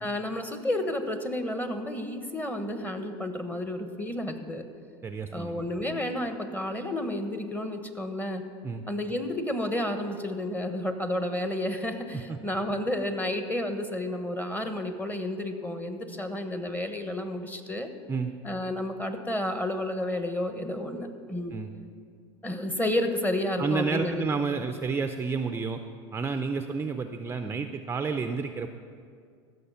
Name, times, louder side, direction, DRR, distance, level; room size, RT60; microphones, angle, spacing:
voice 1, 0.0-4.6 5.3-8.4 8.9-17.9 18.4-21.6 22.4-24.2, left 1 dB, 10° left, 7 dB, 1.1 m, -31 dB
voice 2, 5.0-5.6 8.6-8.8 12.3-12.4 18.1-18.3 21.5-21.7 23.6-25.8 26.1-28.7, right 5 dB, 15° right, 7 dB, 0.5 m, -30 dB
15.0 x 6.5 x 5.6 m, 2.3 s
supercardioid pair, 100°, 14 cm